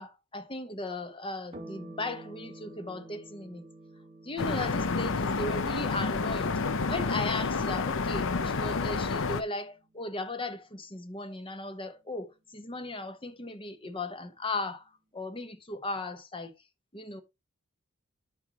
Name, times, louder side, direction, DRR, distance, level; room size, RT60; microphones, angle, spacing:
voice 1, 0.0-3.7 4.2-6.6 6.9-16.5 16.9-17.2, left 2 dB, 25° left, 1.2 m, -37 dB
sound 1, 1.5-10.4, right 2 dB, 30° right, 1.8 m, -51 dB
sound 2, 4.4-9.4, left 4 dB, 65° left, 0.7 m, -29 dB
11.5 x 4.7 x 3.0 m
head